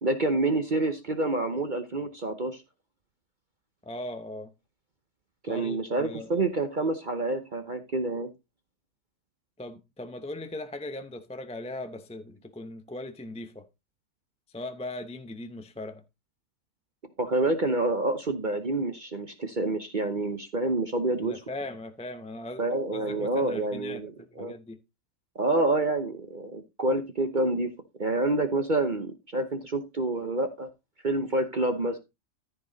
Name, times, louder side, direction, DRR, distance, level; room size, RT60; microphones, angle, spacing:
voice 1, 0.0-2.6 5.4-8.3 17.2-21.3 22.6-24.5 25.3-27.7 28.0-30.7 31.0-32.0, right 2 dB, 35° right, 0.9 m, -28 dB
voice 2, 3.8-4.5 5.5-6.3 9.6-13.7 14.5-16.0 21.2-22.7 22.9-24.8, left 2 dB, 10° left, 0.4 m, -39 dB
13.5 x 5.3 x 4.0 m
omnidirectional pair, 1.7 m